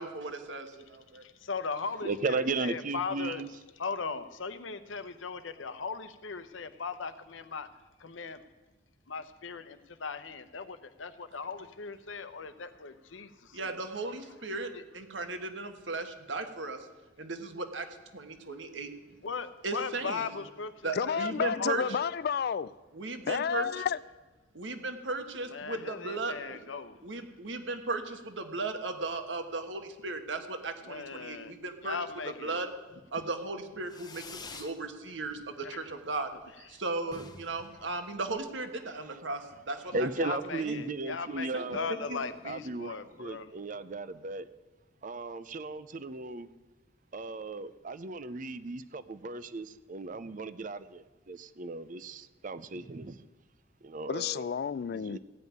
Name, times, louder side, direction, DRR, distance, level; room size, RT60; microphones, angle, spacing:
voice 1, 0.0-1.2 13.5-16.9 17.2-17.9 18.1-18.9 19.6-20.4 20.8-21.8 22.9-23.7 24.5-26.6 27.0-32.0 32.4-32.7 33.1-36.3 36.6-40.1 40.6-40.8 41.5-41.6 42.1-42.2, right 3 dB, 70° right, 1.4 m, -36 dB
voice 2, 1.2-3.4 3.8-7.7 8.0-8.4 9.1-13.7 14.7-14.8 19.2-21.9 25.5-27.0 30.8-31.5 31.8-32.6 35.6-35.8 40.2-43.5, left 5 dB, 80° left, 0.8 m, -38 dB
voice 3, 2.0-3.5 39.1-39.2 39.9-42.0 42.4-44.5 45.0-46.5 47.1-53.3 53.8-54.5 54.9-55.2, right 3 dB, 45° right, 0.5 m, -36 dB
voice 4, 20.9-22.7 23.3-24.0 54.1-55.2, left 7 dB, 55° left, 0.3 m, -31 dB
Fireworks, 33.9-34.8 35.1-35.7 36.0-36.1 36.3-36.4 36.7-36.8 37.0-38.7, left 4 dB, 20° left, 0.7 m, -48 dB
15.5 x 5.5 x 9.3 m
head